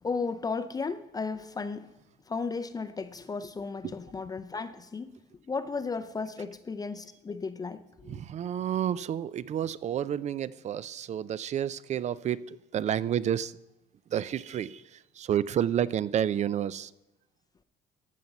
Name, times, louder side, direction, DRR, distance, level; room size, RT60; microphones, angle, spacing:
voice 1, 0.0-1.9 2.3-5.1 5.5-8.2, left 4 dB, 20° left, 0.5 m, -34 dB
voice 2, 8.1-13.5 14.1-16.9, right 10 dB, 45° right, 0.4 m, -30 dB
14.0 x 5.8 x 5.4 m
cardioid pair, 110°, 17 cm